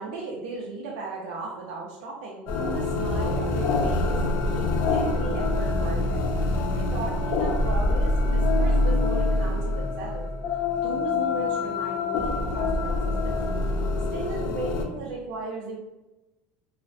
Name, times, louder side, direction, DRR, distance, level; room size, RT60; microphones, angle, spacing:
voice 1, 0.0-6.3 6.7-10.3 10.8-13.6 14.1-15.8, right 3 dB, 75° right, -3 dB, 0.4 m, -36 dB
sound 1, 2.5-14.8, left 2 dB, 45° left, 0.3 m, -25 dB
2.4 x 2.1 x 2.5 m, 1.0 s
cardioid pair, 165°, 5 cm